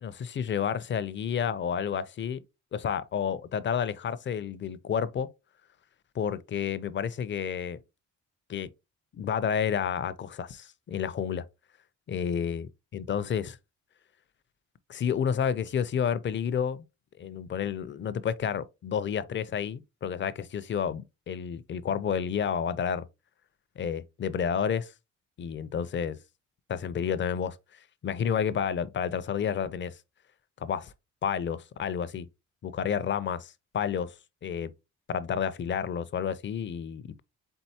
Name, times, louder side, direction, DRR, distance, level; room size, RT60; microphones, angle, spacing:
voice 1, 0.0-2.4 2.7-5.3 6.1-7.8 8.5-8.7 9.1-11.4 12.1-12.7 12.9-13.6 14.9-16.8 17.2-23.0 23.8-24.9 25.4-26.2 26.7-27.6 28.0-30.0 30.6-30.9 31.2-32.3 32.6-34.1 34.4-34.7 35.1-37.2, left 7 dB, 40° left, 0.5 m, -30 dB
4.5 x 3.8 x 2.7 m
cardioid pair, 90°, 30 cm